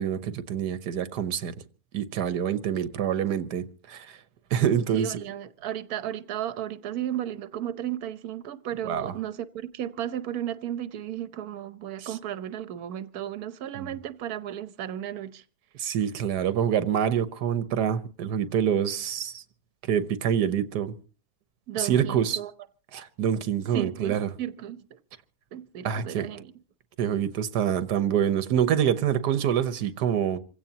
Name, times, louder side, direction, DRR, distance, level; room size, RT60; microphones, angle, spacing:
voice 1, 0.0-1.5 1.9-4.2 4.5-5.2 8.8-9.1 12.0-12.1 15.8-19.4 19.8-20.9 21.8-22.4 22.9-24.3 25.8-26.3 27.0-30.4, right 9 dB, 90° right, 1.5 m, -26 dB
voice 2, 4.9-15.4 15.8-16.0 21.7-22.5 23.7-25.0 25.5-26.5, right 11 dB, 70° right, 1.4 m, -34 dB
27.0 x 16.0 x 2.9 m
omnidirectional pair, 1.7 m